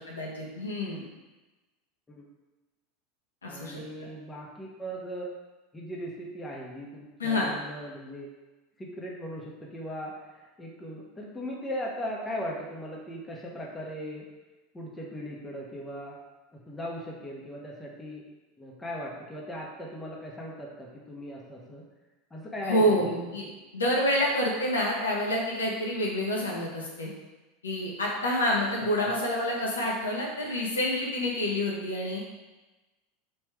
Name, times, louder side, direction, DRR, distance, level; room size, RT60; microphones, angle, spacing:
voice 1, 0.1-1.0 3.4-3.7 7.2-7.5 22.6-23.5 23.7-27.1 27.6-32.2, equal, 75° left, -3 dB, 0.9 m, -28 dB
voice 2, 3.4-5.3 5.7-8.3 8.8-10.1 10.6-14.2 14.7-16.2 16.5-18.2 18.6-21.8 22.3-23.1 29.0-29.1, equal, 15° left, -3 dB, 1.0 m, -38 dB
3.4 x 3.1 x 4.7 m, 1.1 s
figure-of-eight pair, 80°, 0 cm